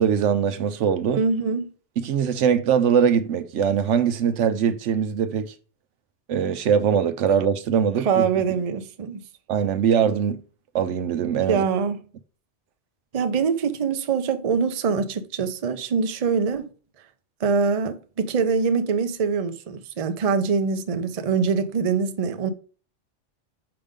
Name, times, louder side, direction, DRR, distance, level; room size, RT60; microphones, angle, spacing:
voice 1, 0.0-1.2 2.0-5.5 6.3-8.2 9.5-10.4 10.7-11.6, right 7 dB, 75° right, 1.0 m, -22 dB
voice 2, 1.2-1.7 8.0-9.2 11.5-12.0 13.1-16.7 17.4-22.5, right 5 dB, 45° right, 0.5 m, -24 dB
5.8 x 5.1 x 3.6 m
omnidirectional pair, 1.3 m